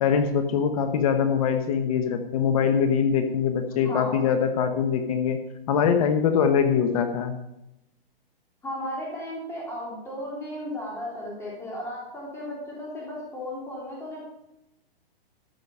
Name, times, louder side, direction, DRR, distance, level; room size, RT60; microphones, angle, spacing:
voice 1, 0.0-5.4 5.7-7.3, left 7 dB, 35° left, 8 dB, 0.9 m, -23 dB
voice 2, 3.8-4.2 8.6-14.2, left 1 dB, 10° left, -5 dB, 3.5 m, -35 dB
13.0 x 6.8 x 5.5 m, 0.88 s
hypercardioid pair, 160°, 30 cm